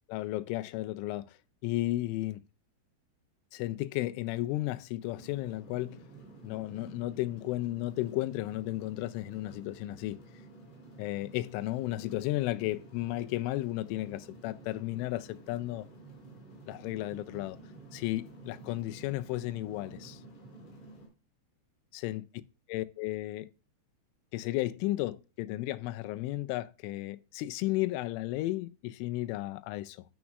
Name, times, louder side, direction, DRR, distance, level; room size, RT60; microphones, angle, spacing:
voice 1, 0.1-1.4 1.6-2.4 3.5-6.0 6.4-10.2 11.0-15.9 16.7-17.6 17.9-20.2 21.9-22.2 22.7-23.5 24.3-30.0, left 17 dB, 90° left, 3.1 m, -34 dB
sound 1, 5.0-21.1, right 2 dB, 55° left, 5.7 m, -51 dB
12.5 x 7.2 x 2.4 m
omnidirectional pair, 5.5 m